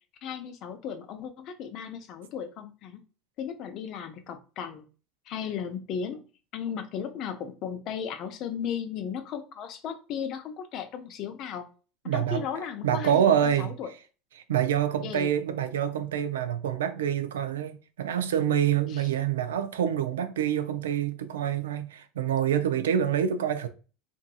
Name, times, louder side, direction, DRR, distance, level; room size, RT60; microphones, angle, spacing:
voice 1, 0.2-3.0 3.4-4.8 5.3-6.3 6.5-11.7 12.1-13.9 15.0-15.3 18.9-19.1, left 7 dB, 55° left, 0.5 m, -35 dB
voice 2, 12.1-12.4 12.8-13.8 14.5-23.7, right 9 dB, 85° right, 0.3 m, -26 dB
2.7 x 2.6 x 2.3 m
hypercardioid pair, 80°, 0 cm